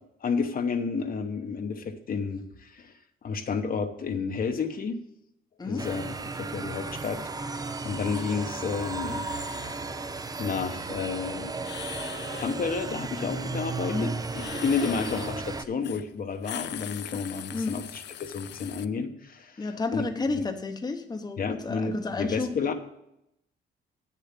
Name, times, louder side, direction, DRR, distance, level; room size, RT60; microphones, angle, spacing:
voice 1, 0.2-2.9 3.2-5.0 5.6-6.1 6.4-9.3 10.4-11.5 12.4-20.0 20.4-20.5 21.4-22.7, left 5 dB, 45° left, 6 dB, 0.9 m, -31 dB
sound 1, 5.8-15.7, right 3 dB, 20° right, 0.5 m, -35 dB
sound 2, 7.9-8.3 8.9-9.8 11.6-12.6 14.3-15.4 15.8-16.0 16.3-18.8, left 11 dB, 60° left, 0.5 m, -41 dB
voice 2, 19.6-22.5, left 3 dB, 20° left, 6 dB, 0.9 m, -31 dB
8.4 x 6.9 x 6.0 m, 0.82 s
cardioid pair, 90°, 20 cm